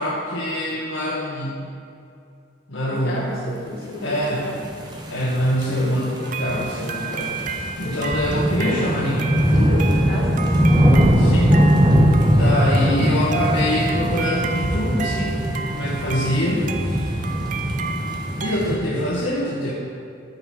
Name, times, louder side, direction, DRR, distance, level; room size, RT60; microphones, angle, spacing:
voice 1, 0.0-1.6 2.7-3.5 4.0-4.5 5.1-9.3 11.2-11.5 12.3-15.4 15.7-17.1 18.4-19.7, equal, 70° left, -6 dB, 1.6 m, -25 dB
voice 2, 2.9-4.5 5.6-5.9 6.4-6.9 7.8-8.1 9.5-10.4 19.6-19.7, left 1 dB, 45° left, -6 dB, 2.8 m, -31 dB
sound 1, 4.4-18.8, equal, 20° right, 1.1 m, -21 dB
sound 2, 6.2-18.6, right 5 dB, 40° right, 0.5 m, -32 dB
14.0 x 6.7 x 4.4 m, 2.4 s
head